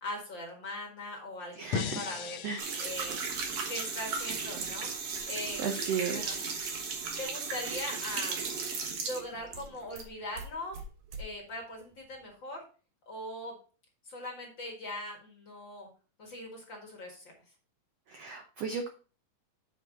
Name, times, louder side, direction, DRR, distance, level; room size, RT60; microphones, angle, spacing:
voice 1, 0.0-2.4 2.8-3.2 3.7-4.9 5.3-5.6 6.1-6.4 7.2-8.4 9.0-10.8 11.2-12.6 13.1-13.5 14.1-15.9 16.2-17.3, left 1 dB, 40° left, 0 dB, 2.0 m, -40 dB
voice 2, 1.5-2.0 2.4-2.6 5.6-6.5 18.1-18.9, right 6 dB, 75° right, 4 dB, 1.4 m, -34 dB
sound 1, 1.7-4.9, left 8 dB, 90° left, 1.5 m, -40 dB
sound 2, 2.6-10.1 10.4-11.2, right 5 dB, 55° right, 2.0 m, -36 dB
8.9 x 5.1 x 3.9 m, 0.37 s
omnidirectional pair, 3.9 m